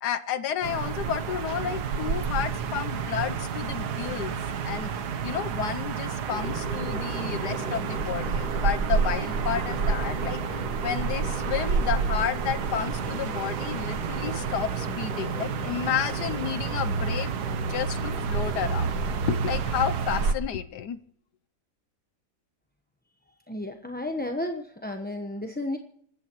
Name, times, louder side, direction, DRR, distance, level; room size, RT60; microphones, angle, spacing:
voice 1, 0.0-4.4 4.6-17.3 17.7-19.0 19.3-21.0, left 9 dB, 80° left, 12 dB, 1.4 m, -31 dB
sound 1, 0.6-20.3, right 5 dB, 75° right, 1.6 m, -29 dB
sound 2, 6.3-19.7, right 1 dB, 50° left, 6.0 m, -39 dB
voice 2, 23.5-25.8, left 1 dB, 5° left, 4 dB, 0.8 m, -32 dB
27.0 x 14.0 x 3.1 m, 0.64 s
omnidirectional pair, 1.7 m